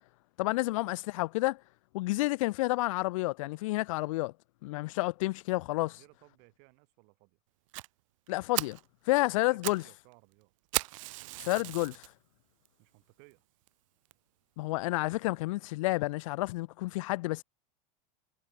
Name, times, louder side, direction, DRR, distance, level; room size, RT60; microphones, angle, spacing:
voice 1, 0.4-1.6 1.9-4.3 4.6-6.0 8.3-8.8 9.1-9.8 11.4-12.1 14.6-17.4, left 20 dB, 75° left, 0.4 m, -30 dB
voice 2, 5.7-7.4 9.2-10.5 12.8-13.4 15.0-15.3, right 40 dB or more, 45° right, 6.9 m, -61 dB
Fire, 7.7-7.9 8.3-8.4 8.5-8.8 9.4-9.9 10.1-10.2 10.7-12.1 12.7-12.8 13.3-13.4 13.7-13.8 14.1-14.2, right 20 dB, 70° right, 0.7 m, -35 dB
supercardioid pair, 175°, 17 cm